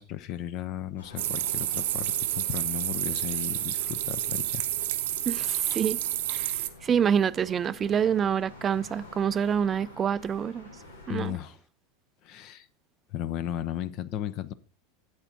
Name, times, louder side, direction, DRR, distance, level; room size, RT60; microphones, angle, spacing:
voice 1, 0.0-4.6 11.1-11.6 12.2-12.7 13.1-14.5, left 12 dB, 45° left, 0.6 m, -35 dB
sound 1, 1.0-11.3, left 2 dB, 80° left, 1.6 m, -49 dB
sound 2, 1.2-6.7, right 14 dB, 60° right, 0.7 m, -30 dB
voice 2, 5.3-6.0 6.3-10.7 11.1-11.4, right 8 dB, 25° right, 0.4 m, -27 dB
10.0 x 7.9 x 4.1 m
figure-of-eight pair, 80°, 0 cm